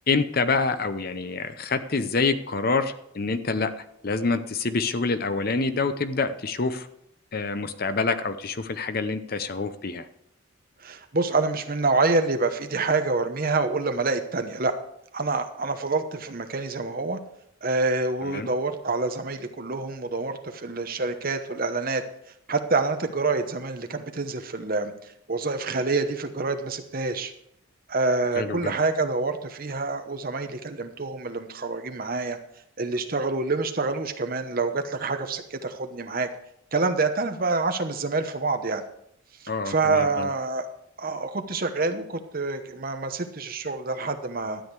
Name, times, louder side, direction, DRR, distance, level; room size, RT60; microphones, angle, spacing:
voice 1, 0.1-6.9 7.3-10.1 18.2-18.5 28.4-28.7 39.5-40.3, left 4 dB, 45° left, 11 dB, 0.7 m, -27 dB
voice 2, 10.8-14.7 15.1-17.2 17.6-22.0 22.5-27.3 27.9-32.4 32.8-36.3 36.7-38.8 39.4-40.7 41.0-44.6, right 3 dB, 45° right, 7 dB, 1.0 m, -27 dB
12.5 x 8.7 x 4.7 m, 0.73 s
head